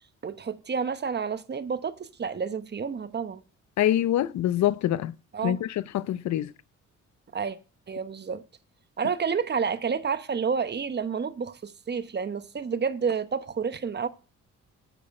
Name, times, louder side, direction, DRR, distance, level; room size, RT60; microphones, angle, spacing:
voice 1, 0.2-3.4 5.3-5.6 7.3-7.6 7.9-8.4 9.0-14.1, right 6 dB, 35° right, 1.0 m, -29 dB
voice 2, 3.8-5.1 5.4-6.5, left 12 dB, 65° left, 0.6 m, -25 dB
9.1 x 8.7 x 4.2 m
cardioid pair, 90°, 30 cm